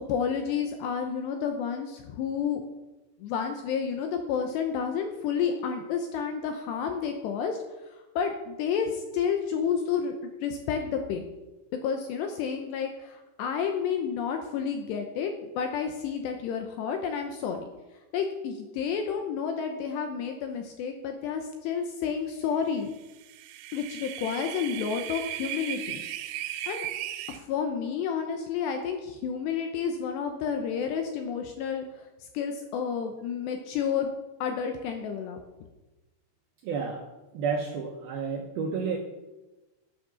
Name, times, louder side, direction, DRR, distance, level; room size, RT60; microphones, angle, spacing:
voice 1, 0.1-2.6 3.2-7.6 7.9-11.3 11.8-17.7 18.1-22.9 23.7-26.0 26.7-26.9 27.3-34.1 34.4-35.4, left 7 dB, 80° left, 5 dB, 2.6 m, -30 dB
sound 1, 23.1-27.4, right 13 dB, 90° right, 3.2 m, -36 dB
voice 2, 36.6-37.0 37.3-39.0, right 5 dB, 75° right, 1 dB, 2.3 m, -30 dB
10.0 x 8.9 x 6.9 m, 1.1 s
omnidirectional pair, 5.7 m